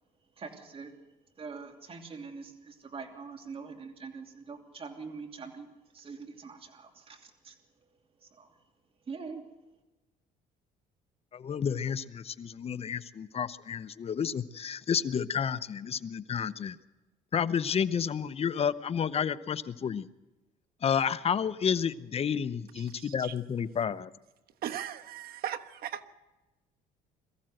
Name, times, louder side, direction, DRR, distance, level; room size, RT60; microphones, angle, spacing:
voice 1, 0.4-0.9 1.4-5.7 5.9-7.5 8.2-8.5 9.1-9.4, right 5 dB, 35° right, 4 dB, 3.0 m, -44 dB
voice 2, 11.3-16.8 17.3-20.1 20.8-24.1, left 7 dB, 35° left, 14 dB, 0.8 m, -31 dB
voice 3, 22.7-23.3 24.6-26.0, right 10 dB, 65° right, 7 dB, 1.3 m, -38 dB
22.5 x 14.5 x 7.8 m, 1.1 s
cardioid pair, 110°, 17 cm